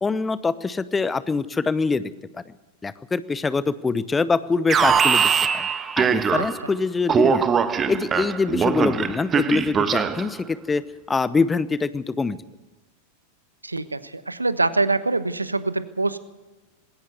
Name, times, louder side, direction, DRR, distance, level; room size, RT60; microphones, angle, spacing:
voice 1, 0.0-2.5 2.8-5.3 5.5-5.7 6.0-7.4 7.9-10.8 11.1-12.4, left 4 dB, 15° left, 16 dB, 0.8 m, -24 dB
Alarm, 4.7-6.7 7.1-10.3, right 6 dB, 20° right, 1.3 m, -21 dB
voice 2, 13.6-16.2, right 3 dB, 80° right, 14 dB, 1.1 m, -24 dB
20.5 x 17.0 x 8.1 m, 1.1 s
figure-of-eight pair, 90°, 0 cm